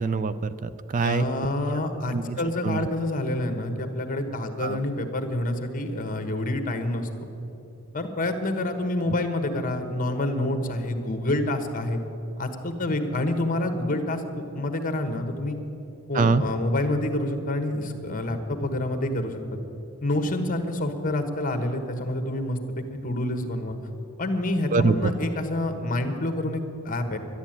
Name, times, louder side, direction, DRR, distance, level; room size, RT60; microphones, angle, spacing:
voice 1, 0.0-1.2 2.1-2.4 2.6-2.9 4.6-4.8 16.1-16.4 24.7-25.1, right 4 dB, 40° right, 14 dB, 0.4 m, -24 dB
voice 2, 1.0-7.1 7.9-12.0 12.4-14.2 14.5-15.6 16.1-19.4 20.0-23.8 24.2-27.2, left 1 dB, 40° left, 7 dB, 1.3 m, -27 dB
11.5 x 11.0 x 8.9 m, 2.9 s
head